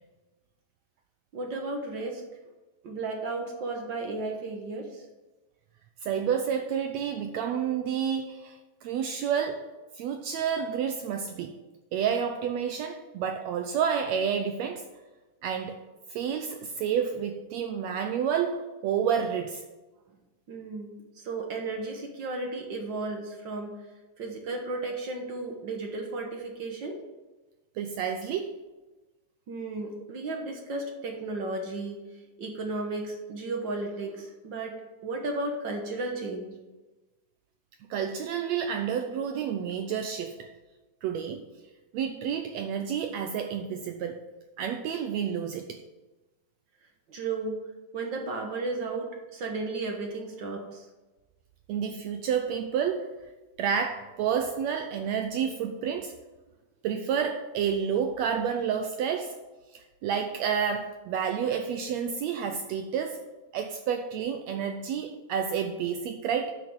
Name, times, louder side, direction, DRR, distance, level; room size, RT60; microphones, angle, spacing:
voice 1, 1.3-2.2 2.8-5.0 20.5-23.8 24.2-27.0 29.5-34.8 35.0-36.6 47.1-47.7 47.9-50.8, right 3 dB, 60° right, 2 dB, 1.2 m, -34 dB
voice 2, 6.0-9.7 9.9-11.6 11.9-14.9 15.4-15.8 16.1-19.6 27.8-28.6 37.9-40.5 41.0-41.5 41.9-44.2 44.6-45.8 51.7-53.1 53.6-56.1 56.8-59.4 59.7-63.2 63.5-66.5, right 7 dB, 85° right, 6 dB, 1.6 m, -30 dB
10.5 x 6.1 x 6.2 m, 1.2 s
omnidirectional pair, 3.7 m